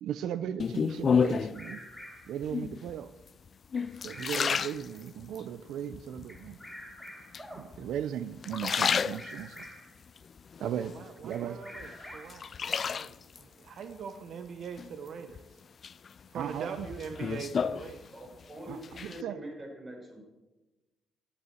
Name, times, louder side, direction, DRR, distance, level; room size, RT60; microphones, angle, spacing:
voice 1, 0.0-1.8 2.3-3.1 4.0-6.6 7.5-9.7 10.6-10.9 11.2-11.6 16.3-16.9 18.7-19.4, right 9 dB, 80° right, 13 dB, 0.5 m, -37 dB
sound 1, 0.6-1.7 2.4-2.9 3.5-5.4 5.9-6.5 7.3-8.0 8.3-9.7 10.2-11.4 11.8-13.4 14.8-15.4 15.8-18.4 18.7-19.2, left 6 dB, 45° left, 0.3 m, -31 dB
Bird vocalization bird call bird song, 1.2-2.4 3.8-4.9 6.3-7.5 8.8-10.0 11.3-12.5, left 1 dB, 5° left, 5.6 m, -47 dB
sound 2, 6.7-7.0 7.4-7.7 11.2-11.4 11.8-13.0 13.6-13.7 15.4-15.5 16.6-16.7 17.9-18.0, right 1 dB, 15° right, 2.3 m, -51 dB
voice 2, 10.9-15.6 16.3-18.0, right 6 dB, 65° right, 8 dB, 0.9 m, -42 dB
voice 3, 18.1-20.2, right 1 dB, 30° right, 1 dB, 5.5 m, -44 dB
12.5 x 9.8 x 7.7 m, 1.1 s
cardioid pair, 90°, 0 cm